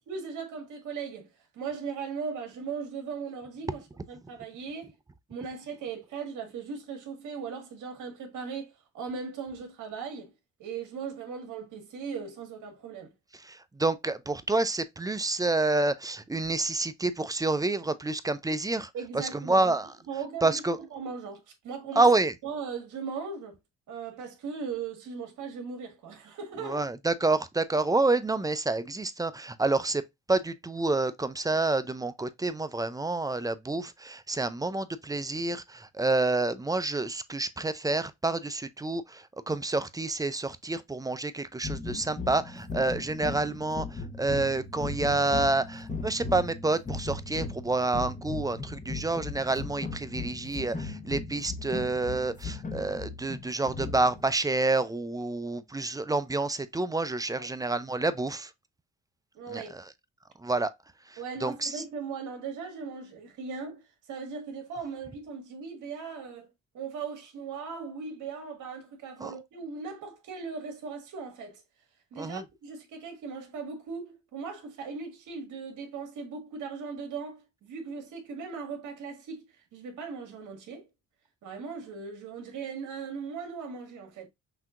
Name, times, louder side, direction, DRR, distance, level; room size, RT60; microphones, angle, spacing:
voice 1, 0.0-4.9 5.3-10.3 10.6-13.1 18.9-19.7 20.1-20.6 20.9-22.0 22.4-23.6 23.9-26.8 57.3-57.6 59.3-59.7 61.2-63.8 64.1-66.5 66.7-71.6 72.1-79.4 79.7-80.9 81.4-84.3, right 5 dB, 80° right, 1.6 m, -38 dB
voice 2, 13.4-18.9 19.1-19.9 20.4-20.8 22.0-22.3 26.6-30.0 30.3-58.5 59.5-59.8 60.4-60.7 61.1-61.8 69.2-69.4 72.2-72.4, right 2 dB, 10° right, 0.4 m, -28 dB
sound 1, 41.6-54.3, left 3 dB, 25° left, 1.0 m, -37 dB
5.8 x 2.8 x 2.4 m
cardioid pair, 90°, 30 cm